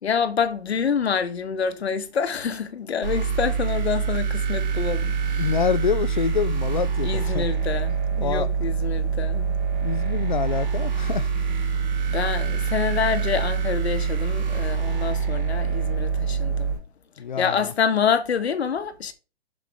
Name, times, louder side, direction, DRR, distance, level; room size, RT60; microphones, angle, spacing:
voice 1, 0.0-5.5 7.0-9.5 12.1-16.7 17.4-19.1, left 6 dB, 70° left, 1.4 m, -27 dB
sound 1, 3.0-16.7, right 6 dB, 40° right, 1.9 m, -25 dB
sound 2, 4.6-16.8, left 6 dB, 25° left, 1.6 m, -44 dB
voice 2, 5.4-7.5 8.2-8.5 9.8-11.3 17.2-17.7, left 7 dB, 45° left, 0.4 m, -26 dB
7.7 x 6.3 x 3.6 m
hypercardioid pair, 180°, 33 cm